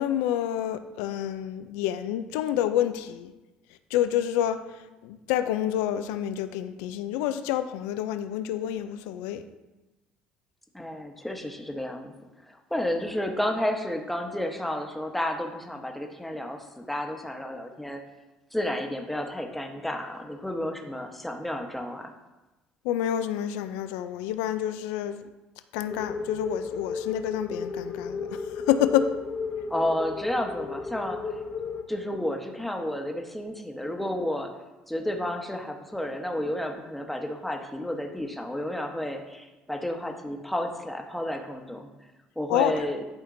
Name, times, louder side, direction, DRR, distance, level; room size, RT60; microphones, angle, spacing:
voice 1, 0.0-3.3 3.9-9.4 22.8-25.2 25.7-29.1 42.5-42.8, left 11 dB, 90° left, 0.4 m, -28 dB
voice 2, 10.7-12.1 12.5-18.0 18.5-22.1 29.7-31.4 31.9-34.5 34.9-41.9 42.4-43.0, left 1 dB, 5° left, 0.9 m, -31 dB
sound 1, 25.9-31.8, left 4 dB, 45° left, 0.9 m, -34 dB
11.0 x 4.3 x 2.6 m
supercardioid pair, 90°, 3 cm